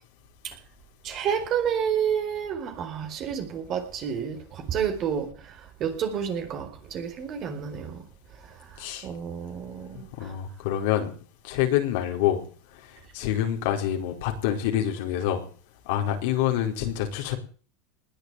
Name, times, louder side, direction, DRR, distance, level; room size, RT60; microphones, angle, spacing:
voice 1, 1.0-8.0 9.0-10.3, right 8 dB, 45° right, 4.4 m, -30 dB
voice 2, 9.9-11.1 11.4-12.4 12.8-15.4 15.8-17.4, left 11 dB, 70° left, 4.5 m, -27 dB
20.0 x 6.9 x 9.2 m
hypercardioid pair, 105°, 0 cm